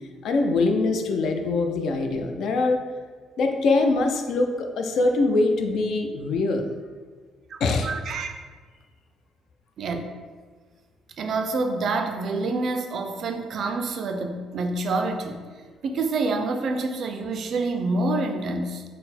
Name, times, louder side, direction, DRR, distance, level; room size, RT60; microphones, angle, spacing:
voice 1, 0.2-2.8 3.4-6.7 7.6-7.9, left 3 dB, 55° left, 4 dB, 0.4 m, -23 dB
voice 2, 7.5-8.3 9.8-10.0 11.2-15.4 15.8-18.8, right 3 dB, 45° right, 6 dB, 0.3 m, -27 dB
4.0 x 2.1 x 4.1 m, 1.5 s
cardioid pair, 165°, 0 cm